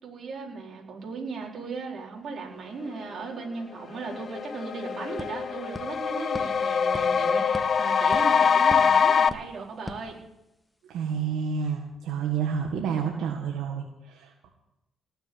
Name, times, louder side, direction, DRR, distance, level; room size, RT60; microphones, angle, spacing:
voice 1, 0.0-10.2, right 4 dB, 55° right, -1 dB, 4.8 m, -37 dB
sound 1, 3.5-3.6 3.9-9.3, left 6 dB, 50° left, 0.7 m, -24 dB
sound 2, 4.1-4.2 4.4-10.8, left 2 dB, 15° left, 1.5 m, -44 dB
voice 2, 10.9-14.5, right 6 dB, 85° right, 1 dB, 1.8 m, -29 dB
19.0 x 6.8 x 9.8 m, 0.88 s
cardioid pair, 90°, 0 cm